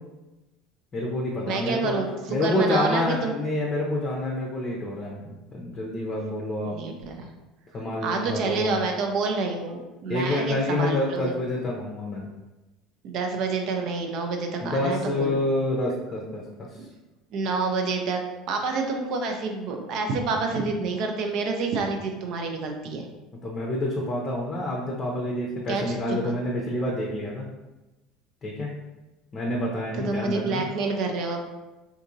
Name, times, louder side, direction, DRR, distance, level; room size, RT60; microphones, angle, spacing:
voice 1, 0.9-2.0 2.3-6.7 7.7-8.9 10.1-12.3 14.6-16.9 23.4-27.5 28.4-28.7 29.3-30.6, left 1 dB, 30° left, -2 dB, 0.6 m, -28 dB
voice 2, 1.5-2.1 2.4-3.3 6.7-7.3 8.0-11.3 13.0-15.4 17.3-23.1 25.7-26.3 30.0-31.4, right 4 dB, 55° right, 3 dB, 0.4 m, -28 dB
3.6 x 2.6 x 2.6 m, 1.1 s
figure-of-eight pair, 70°, 0 cm